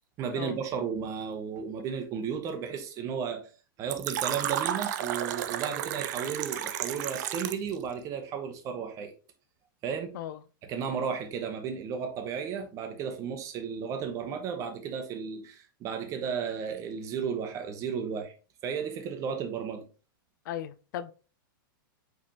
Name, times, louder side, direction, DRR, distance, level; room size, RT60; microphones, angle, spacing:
voice 1, 0.2-3.4 3.8-9.1 9.8-10.1 10.6-18.3 18.6-19.8, right 7 dB, 25° right, 0.9 m, -34 dB
Fill (with liquid), 3.9-7.7, right 11 dB, 50° right, 0.5 m, -32 dB
voice 2, 20.5-21.1, left 11 dB, 60° left, 0.4 m, -36 dB
5.1 x 3.4 x 2.8 m
supercardioid pair, 150°, 12 cm